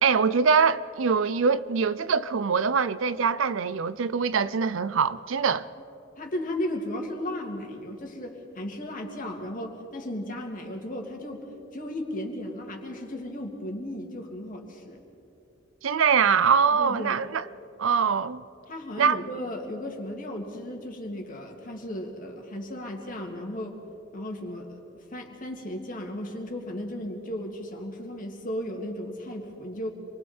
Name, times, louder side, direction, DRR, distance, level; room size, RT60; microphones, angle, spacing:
voice 1, 0.0-5.6 15.8-17.4 17.8-18.4 19.0-19.2, right 6 dB, 75° right, 0.5 m, -23 dB
voice 2, 6.2-11.4 11.7-15.0 16.7-17.2 18.7-23.8 24.1-24.8 25.1-29.9, left 1 dB, 45° left, 2.5 m, -35 dB
27.0 x 22.5 x 4.4 m
head